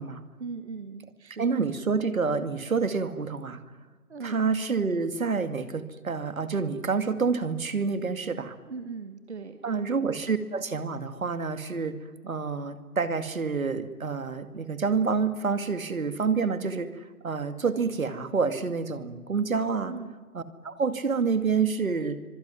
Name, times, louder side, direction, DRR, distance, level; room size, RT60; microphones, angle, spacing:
voice 1, 0.4-1.6 4.1-4.4 8.7-9.8 19.9-20.2, right 4 dB, 50° right, 8 dB, 1.6 m, -39 dB
voice 2, 1.4-3.6 4.2-8.6 9.6-12.0 12.2-19.9 20.3-22.2, right 5 dB, 65° right, 10 dB, 2.5 m, -28 dB
25.0 x 24.0 x 9.8 m, 1.3 s
hypercardioid pair, 170°, 44 cm